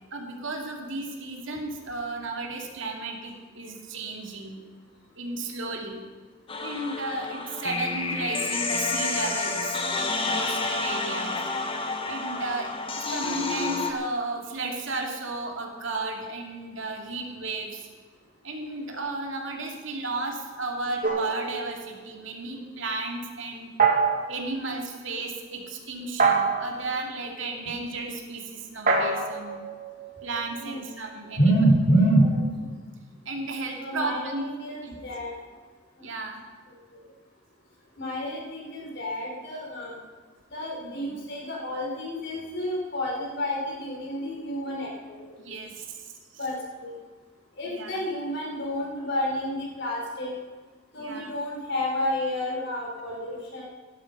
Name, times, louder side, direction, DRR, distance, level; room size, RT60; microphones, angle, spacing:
voice 1, 0.1-4.6 5.2-6.0 6.6-11.4 12.1-12.7 13.1-17.9 18.4-23.7 24.3-29.6 30.2-31.6 33.2-34.4 34.8-35.0 36.0-36.4 40.8-41.2 45.4-46.0 47.6-48.0 51.0-51.3, right 2 dB, 65° right, 2 dB, 2.7 m, -34 dB
sound 1, 6.5-13.9, left 3 dB, 25° left, 1.4 m, -29 dB
sound 2, 21.0-22.1 23.8-24.4 26.2-26.8 28.9-30.6, right 4 dB, 45° right, 2.3 m, -25 dB
voice 2, 31.4-32.7 33.8-35.4 36.9-37.0 38.0-40.0 40.5-45.3 46.4-46.9 47.6-50.3 50.9-53.7, equal, 60° left, -2 dB, 4.9 m, -28 dB
16.5 x 12.0 x 5.6 m, 1.5 s
head